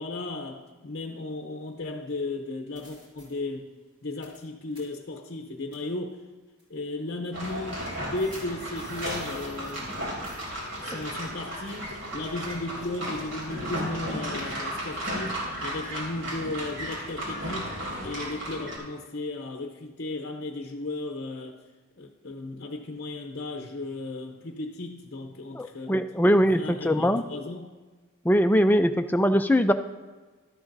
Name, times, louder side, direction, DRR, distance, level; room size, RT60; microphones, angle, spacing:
voice 1, 0.0-3.7 4.0-6.2 6.7-10.0 10.8-21.6 22.0-26.0 26.4-27.7, left 2 dB, 50° left, 2 dB, 0.7 m, -35 dB
sound 1, 2.1-2.2 2.8-3.3 4.2-4.4 4.7-4.8 5.7-5.9 6.6-6.7 8.1-10.0 10.2-10.4, right 1 dB, 25° right, 3.1 m, -50 dB
sound 2, 7.3-18.8, equal, 55° right, 3.0 m, -34 dB
voice 2, 25.5-27.2 28.2-29.7, equal, 10° left, 7 dB, 0.3 m, -21 dB
12.5 x 11.0 x 2.6 m, 1.3 s
head